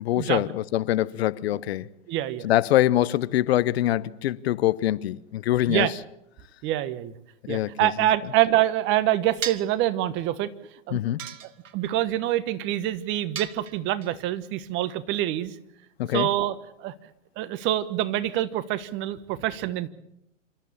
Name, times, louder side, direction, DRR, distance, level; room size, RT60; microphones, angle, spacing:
voice 1, 0.0-1.9 2.4-5.9 7.5-7.9 10.9-11.2 16.0-16.3, left 14 dB, 50° left, 0.8 m, -24 dB
voice 2, 2.1-2.5 5.7-5.9 6.6-7.1 7.5-10.5 10.9-11.0 11.7-15.5 16.1-16.9 17.4-19.9, right 13 dB, 30° right, 1.3 m, -26 dB
sound 1, 9.4-9.8 11.2-11.9 13.3-14.1, right 8 dB, 75° right, 1.8 m, -35 dB
27.5 x 13.5 x 8.7 m
hypercardioid pair, 130°, 39 cm